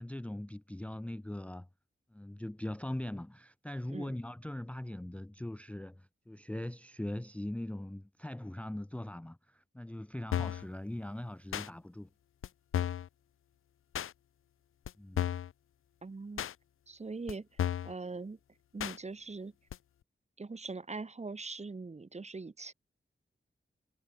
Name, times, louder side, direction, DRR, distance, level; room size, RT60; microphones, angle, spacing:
voice 1, 0.0-1.7 2.1-12.1 15.0-15.3, left 1 dB, 5° left, 0.5 m, -41 dB
sound 1, 10.3-10.7 11.5-11.7 12.4-12.5 12.7-13.1 13.9-14.1 14.9-15.0 15.2-15.5 16.4-16.5 17.3-17.4 17.6-17.9 18.8-19.0 19.7-19.8, left 10 dB, 85° left, 0.4 m, -33 dB
voice 2, 16.0-16.5 16.9-17.5 17.8-18.4 18.7-19.5 20.4-22.7, right 3 dB, 30° right, 0.9 m, -41 dB
wide cardioid pair, 70°, 21 cm